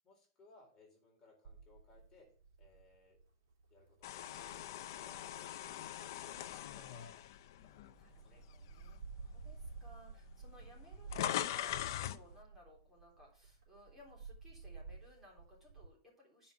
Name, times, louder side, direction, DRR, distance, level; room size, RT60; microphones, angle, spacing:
voice 1, 0.0-2.3 2.6-3.2 3.7-7.2 7.6-8.4, left 2 dB, 20° left, -1 dB, 3.7 m, -64 dB
sound 1, 1.4-7.4 7.9-15.9, right 4 dB, 55° right, 3.4 m, -53 dB
sound 2, 4.0-8.3 8.8-9.0 9.9-10.0 10.2-12.2, left 12 dB, 60° left, 0.5 m, -41 dB
voice 2, 5.0-5.6 8.0-16.5, left 1 dB, 10° right, -3 dB, 3.5 m, -61 dB
9.7 x 5.5 x 5.8 m, 0.44 s
supercardioid pair, 160°, 2 cm